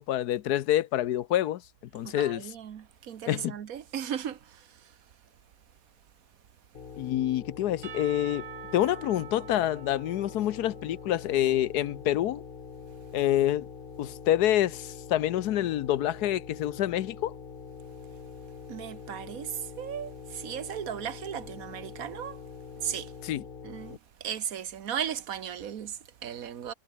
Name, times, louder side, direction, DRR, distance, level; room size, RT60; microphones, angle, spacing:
voice 1, 0.0-1.6 1.9-2.4 3.3-3.5 6.9-8.4 8.7-12.4 13.1-13.7 14.0-17.3 23.2-23.4, left 12 dB, 75° left, 1.2 m, -27 dB
voice 2, 2.0-5.0 18.7-22.4 22.8-23.1 23.6-26.7, right 9 dB, 60° right, 1.4 m, -36 dB
sound 1, 6.7-24.0, left 5 dB, 35° left, 1.3 m, -44 dB
Percussion / Church bell, 7.8-11.7, right 10 dB, 90° right, 1.7 m, -46 dB
omnidirectional pair, 1.7 m